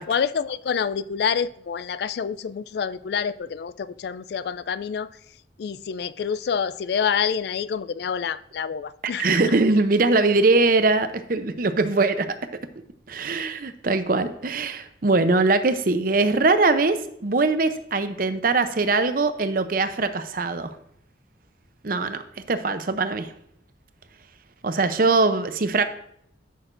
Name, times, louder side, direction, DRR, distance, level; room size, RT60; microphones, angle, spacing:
voice 1, 0.1-5.1 5.6-9.6, left 7 dB, 60° left, 0.3 m, -27 dB
voice 2, 9.2-12.3 13.1-20.7 21.8-22.2 22.5-23.3 24.6-25.9, right 3 dB, 50° right, 0.6 m, -21 dB
13.0 x 6.4 x 2.5 m
head